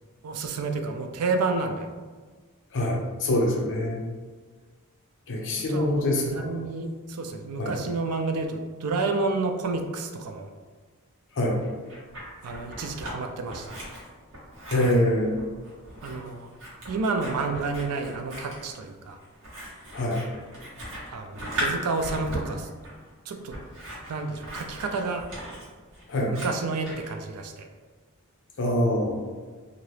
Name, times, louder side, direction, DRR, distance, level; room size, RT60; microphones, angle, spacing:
voice 1, 0.2-1.9 5.7-10.5 12.4-13.9 16.0-16.5 16.9-19.2 21.1-22.7 23.3-23.5 24.1-25.3 26.3-27.7, right 3 dB, 80° right, 5 dB, 0.4 m, -30 dB
voice 2, 2.7-4.0 5.3-6.6 7.6-7.8 11.3-11.6 14.7-15.3 19.9-20.2 26.1-26.3 28.6-29.2, left 1 dB, 60° left, -1 dB, 0.6 m, -25 dB
Scissors, 11.6-13.2 13.5-27.1, equal, 60° right, 1.1 m, -38 dB
2.8 x 2.5 x 3.2 m, 1.4 s
head